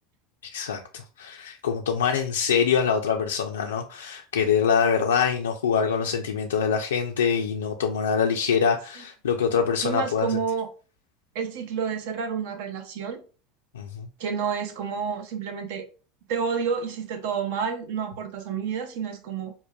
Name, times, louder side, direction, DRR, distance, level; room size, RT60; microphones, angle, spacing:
voice 1, 0.5-10.4 13.7-14.1, left 6 dB, 80° left, 0.3 m, -24 dB
voice 2, 9.8-10.7 11.3-13.2 14.2-15.9 16.3-19.5, right 6 dB, 65° right, 0.6 m, -29 dB
5.3 x 2.1 x 2.2 m
hypercardioid pair, 80°, 0 cm